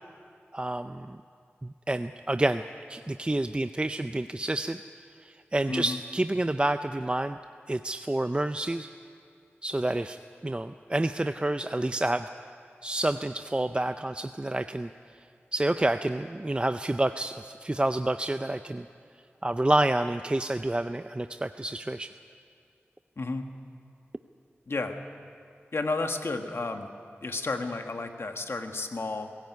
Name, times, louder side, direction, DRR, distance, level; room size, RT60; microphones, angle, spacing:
voice 1, 0.5-1.2 1.6-2.6 2.9-4.8 5.2-7.4 7.7-8.9 9.6-12.3 12.8-14.9 15.5-18.9 19.4-22.1, right 1 dB, 25° right, 9 dB, 0.5 m, -28 dB
voice 2, 5.7-6.0 23.2-23.4 24.7-25.0 25.7-26.9 27.2-29.3, left 3 dB, 70° left, 5 dB, 1.6 m, -32 dB
21.5 x 16.0 x 9.4 m, 2.3 s
wide cardioid pair, 50°, 4 cm